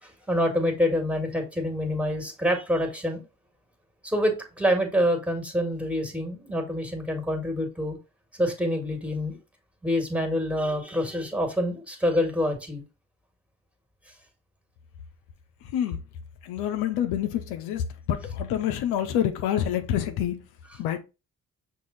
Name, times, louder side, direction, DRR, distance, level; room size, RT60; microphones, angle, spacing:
voice 1, 0.0-3.2 4.0-8.0 8.4-9.4 9.8-12.8, equal, 5° right, 1.8 m, -26 dB
voice 2, 16.4-20.4 20.8-21.0, left 10 dB, 80° left, 0.6 m, -27 dB
5.8 x 2.2 x 4.0 m
hypercardioid pair, 45°, 38 cm